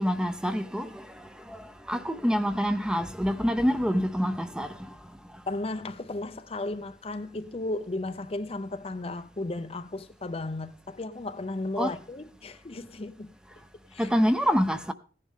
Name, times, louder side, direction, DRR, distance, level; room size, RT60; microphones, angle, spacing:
voice 1, 0.0-4.9 11.8-11.9 14.0-14.9, equal, 5° right, 0.7 m, -27 dB
voice 2, 5.5-13.3 13.9-14.1, left 2 dB, 35° left, 0.6 m, -34 dB
16.5 x 10.5 x 3.7 m
head